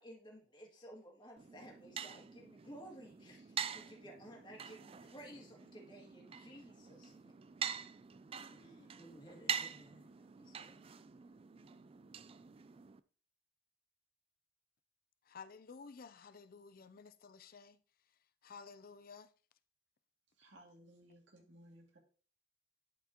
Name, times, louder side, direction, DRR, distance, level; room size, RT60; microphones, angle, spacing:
voice 1, 0.0-7.3 8.5-10.1 10.4-10.7, equal, 25° left, 2.3 m, -55 dB
sound 1, 1.4-13.0, right 7 dB, 30° right, 0.3 m, -45 dB
voice 2, 15.3-17.8 18.4-19.3, left 5 dB, 50° left, 0.5 m, -53 dB
voice 3, 20.4-22.0, right 1 dB, 75° right, 2.3 m, -60 dB
11.5 x 4.7 x 2.9 m
head